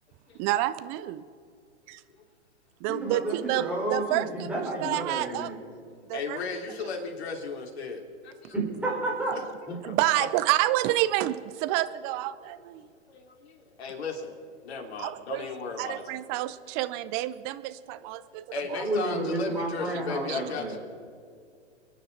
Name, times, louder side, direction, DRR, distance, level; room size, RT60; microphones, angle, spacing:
voice 1, 0.4-1.2 1.9-2.0 2.8-4.5 4.8-5.5 6.1-6.4 9.8-12.8 15.0-15.5 15.8-18.8 20.3-20.4, right 15 dB, 25° right, 14 dB, 0.5 m, -29 dB
voice 2, 2.9-5.6 8.5-9.3 9.7-10.0 18.7-20.7, right 2 dB, 5° right, -4 dB, 4.3 m, -31 dB
voice 3, 6.1-8.5 8.9-9.0 9.7-9.8 10.2-10.3 13.1-14.3 14.6-16.0 18.2-20.8, left 4 dB, 60° left, 1 dB, 3.2 m, -36 dB
29.5 x 10.5 x 4.0 m, 2.2 s
hypercardioid pair, 120°, 36 cm